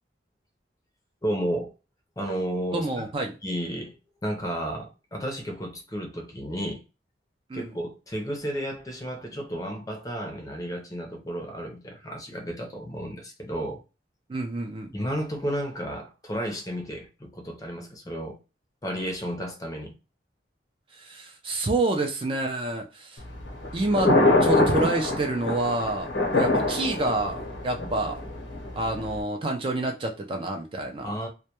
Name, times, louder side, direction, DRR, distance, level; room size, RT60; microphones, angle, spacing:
voice 1, 1.2-1.7 2.2-3.1 3.4-6.8 7.5-13.8 14.9-18.4 18.8-19.9 31.0-31.3, equal, 20° left, 0.5 m, -32 dB
voice 2, 2.7-3.3 7.5-7.8 14.3-14.9 20.9-23.2 23.7-28.2 28.7-31.1, right 2 dB, 30° right, 0.4 m, -28 dB
Thunder, 23.2-29.2, left 2 dB, 85° left, 0.8 m, -25 dB
2.2 x 2.1 x 2.8 m
head